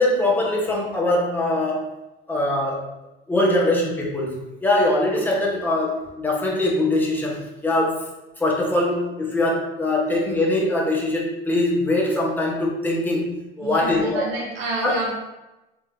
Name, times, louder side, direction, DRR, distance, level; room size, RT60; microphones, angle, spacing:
voice 1, 0.0-1.9 2.3-2.8 3.3-4.4 4.6-8.1 8.4-14.3 14.8-14.9, left 1 dB, 5° left, -3 dB, 1.1 m, -22 dB
voice 2, 13.6-15.1, right 2 dB, 80° right, -3 dB, 1.4 m, -28 dB
3.7 x 3.4 x 2.8 m, 1.0 s
hypercardioid pair, 90°, 29 cm